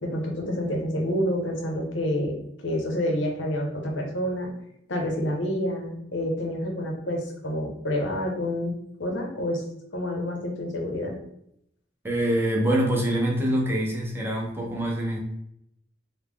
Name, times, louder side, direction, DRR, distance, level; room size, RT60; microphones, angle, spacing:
voice 1, 0.0-4.5 4.9-8.7 9.0-9.6 9.9-11.2, equal, 90° left, 1 dB, 0.8 m, -28 dB
voice 2, 12.0-15.2, right 1 dB, 15° right, -2 dB, 0.6 m, -25 dB
3.4 x 2.2 x 3.6 m, 0.75 s
head